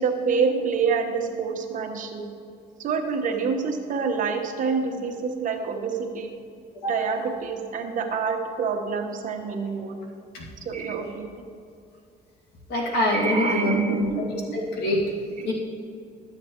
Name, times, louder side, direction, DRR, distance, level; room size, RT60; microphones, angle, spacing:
voice 1, 0.0-2.2 2.8-6.3 6.9-9.9 10.6-11.3 13.1-14.6 15.4-15.5, right 5 dB, 50° right, 3 dB, 1.0 m, -27 dB
voice 2, 12.7-15.1 15.5-15.6, left 1 dB, 80° left, -2 dB, 2.2 m, -25 dB
12.5 x 7.8 x 3.0 m, 2.4 s
cardioid pair, 110°, 17 cm